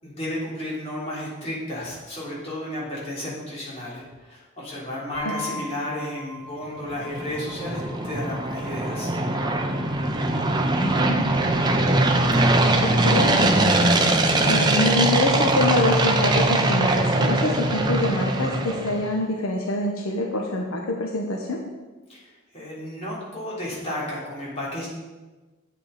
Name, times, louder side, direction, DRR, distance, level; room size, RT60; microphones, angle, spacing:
voice 1, 0.0-9.1 22.1-24.9, left 1 dB, 30° left, -7 dB, 3.3 m, -33 dB
sound 1, 5.1-17.1, left 2 dB, 40° right, 3.0 m, -42 dB
voice 2, 5.2-5.6 10.8-11.3 12.8-13.4 14.4-21.6, left 2 dB, 75° left, 1 dB, 1.0 m, -25 dB
sound 2, 6.8-19.1, right 2 dB, 20° right, 0.6 m, -21 dB
8.6 x 8.4 x 4.2 m, 1.2 s
head